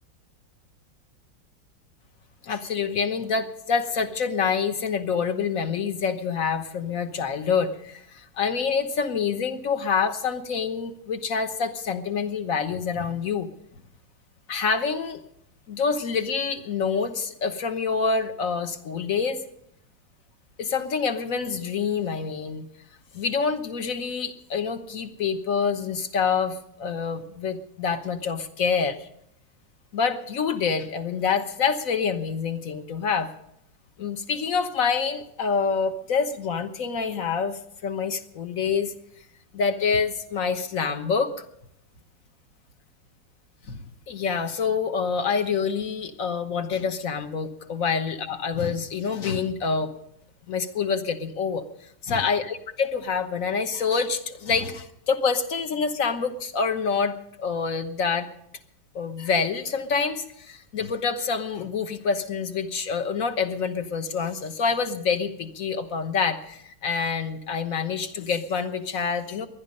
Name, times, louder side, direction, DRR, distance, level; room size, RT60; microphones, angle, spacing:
voice 1, 2.4-13.5 14.5-15.2 15.7-19.4 20.6-22.7 23.1-29.1 29.9-33.3 34.0-38.9 39.5-41.3 43.7-49.9 50.5-58.3 58.9-69.5, left 5 dB, 50° left, 8 dB, 1.4 m, -27 dB
20.0 x 11.5 x 5.4 m, 0.74 s
omnidirectional pair, 2.2 m